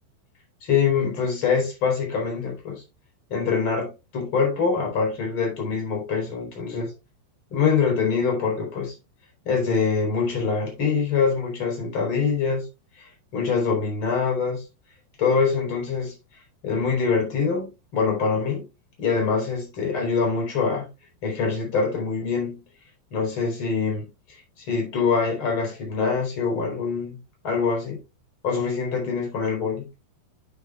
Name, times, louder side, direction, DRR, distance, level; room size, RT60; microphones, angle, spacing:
voice 1, 0.6-2.8 3.3-6.9 7.5-9.0 9.5-12.6 13.0-14.6 15.2-16.1 16.6-18.7 19.0-20.9 21.2-22.6 23.1-24.1 24.6-27.2 27.4-28.0 28.4-29.9, left 5 dB, 30° left, 4.2 m, -24 dB
9.0 x 8.9 x 2.3 m
omnidirectional pair, 5.3 m